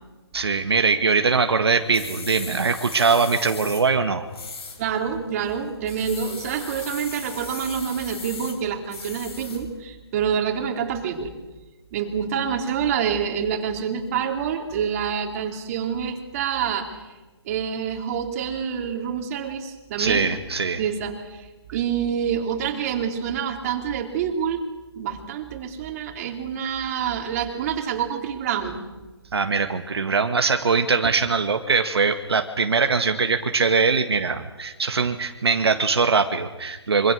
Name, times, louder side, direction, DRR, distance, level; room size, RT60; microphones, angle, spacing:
voice 1, 0.3-4.2 20.0-20.8 29.3-37.1, right 4 dB, 70° right, 7 dB, 1.9 m, -22 dB
sound 1, 1.7-9.8, left 4 dB, 65° left, 7.6 m, -39 dB
voice 2, 4.8-11.3 11.9-17.0 17.5-20.4 20.8-24.6 25.0-28.8, right 7 dB, 35° right, 4 dB, 3.8 m, -27 dB
26.5 x 25.5 x 6.4 m, 1.2 s
figure-of-eight pair, 145°, 14 cm